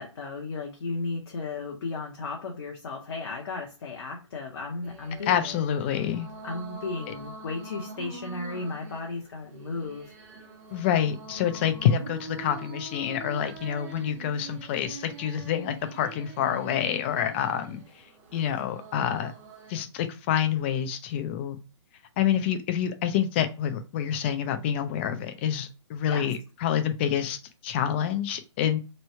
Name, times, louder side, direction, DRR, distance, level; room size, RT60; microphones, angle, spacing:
voice 1, 0.0-5.6 6.4-10.1 26.1-26.3, left 3 dB, 55° left, 0.8 m, -35 dB
sound 1, 4.8-19.8, right 3 dB, 30° right, 0.8 m, -44 dB
voice 2, 5.3-6.3 10.7-17.8 18.3-19.3 19.7-21.6 22.2-27.4 27.6-28.8, left 9 dB, 25° left, 0.3 m, -27 dB
3.1 x 2.2 x 4.1 m
hypercardioid pair, 140°, 16 cm